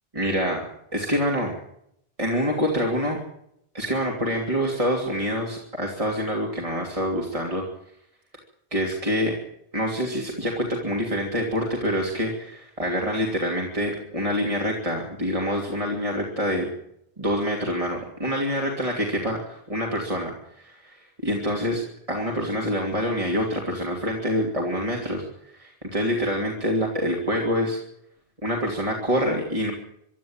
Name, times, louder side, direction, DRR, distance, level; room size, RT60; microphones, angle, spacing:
voice 1, 0.1-0.6 0.9-1.6 2.2-3.2 3.7-7.6 8.7-9.3 9.7-16.7 17.2-20.3 20.6-21.8 22.1-27.8 28.4-29.7, equal, 35° right, -1 dB, 3.0 m, -26 dB
25.0 x 12.5 x 8.9 m, 0.75 s
omnidirectional pair, 1.1 m